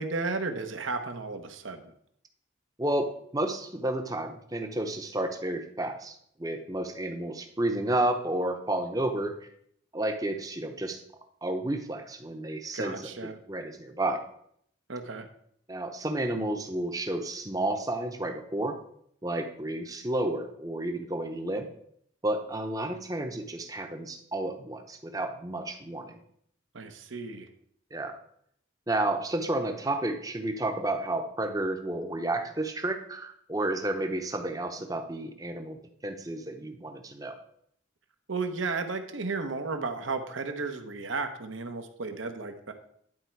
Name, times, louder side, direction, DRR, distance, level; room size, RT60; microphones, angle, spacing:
voice 1, 0.0-1.9 12.7-13.4 14.9-15.3 26.7-27.5 38.3-42.7, right 3 dB, 75° right, 7 dB, 1.0 m, -34 dB
voice 2, 3.3-9.3 9.9-11.0 11.4-12.9 13.5-14.2 15.7-18.8 19.2-21.7 22.2-26.2 27.9-28.2 28.9-35.8 36.0-37.3, right 1 dB, 20° right, 6 dB, 0.7 m, -31 dB
11.0 x 4.4 x 4.6 m, 0.68 s
head